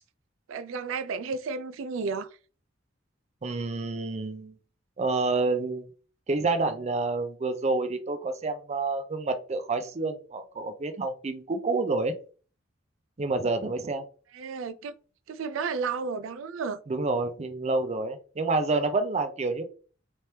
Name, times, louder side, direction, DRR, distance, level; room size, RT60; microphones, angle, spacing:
voice 1, 0.5-2.3 14.3-14.9 15.3-16.8, right 5 dB, 85° right, 0.4 m, -32 dB
voice 2, 3.4-4.5 5.0-5.9 6.3-12.1 13.2-14.0 16.9-19.6, right 3 dB, 35° right, 0.5 m, -28 dB
3.3 x 3.1 x 2.8 m
head